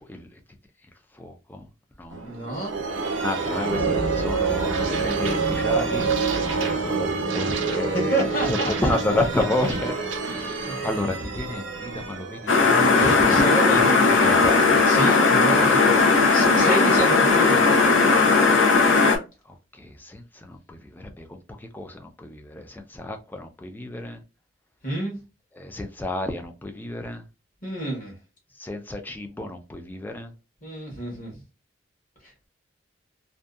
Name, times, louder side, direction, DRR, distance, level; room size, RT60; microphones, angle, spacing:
voice 1, 1.2-1.6 2.0-2.2 3.2-9.9 10.2-13.8 14.1-14.7 15.8-15.9 19.8-21.3 21.7-24.2 25.6-27.2 28.6-30.3, left 2 dB, 10° left, 0.3 m, -31 dB
sound 1, 2.1-13.6, right 4 dB, 70° right, 0.6 m, -27 dB
voice 2, 2.2-2.8 7.9-9.2 10.7-10.9 12.6-18.0 24.8-25.2 27.6-28.1 30.6-31.3, right 1 dB, 45° left, 1.1 m, -29 dB
sound 2, 12.5-19.2, left 4 dB, 75° left, 0.6 m, -17 dB
2.6 x 2.2 x 2.3 m
head